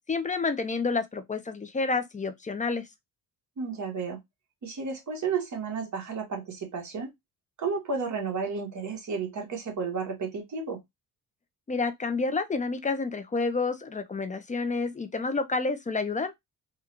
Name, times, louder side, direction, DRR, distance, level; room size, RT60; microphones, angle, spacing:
voice 1, 0.1-2.9 11.7-16.3, left 4 dB, 20° left, 0.4 m, -29 dB
voice 2, 3.6-4.2 4.6-7.1 7.6-10.8, right 5 dB, 45° right, 1.4 m, -32 dB
3.6 x 2.2 x 2.9 m
cardioid pair, 130°, 39 cm